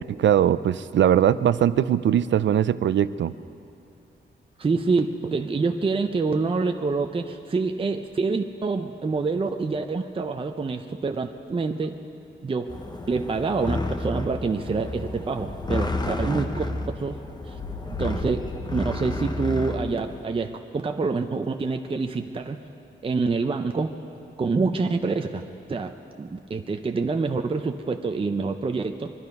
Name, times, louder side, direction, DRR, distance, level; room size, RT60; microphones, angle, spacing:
voice 1, 0.0-3.3, right 10 dB, 75° right, 15 dB, 0.5 m, -21 dB
voice 2, 4.6-12.0 12.4-12.8 13.1-17.2 17.5-17.6 18.0-22.6 23.0-24.0 24.4-25.4 25.7-29.1, right 4 dB, 30° right, 5 dB, 0.6 m, -26 dB
sound 1, 12.7-20.2, left 2 dB, 20° left, 0.9 m, -31 dB
22.5 x 12.0 x 5.3 m, 2.6 s
wide cardioid pair, 115°, 19 cm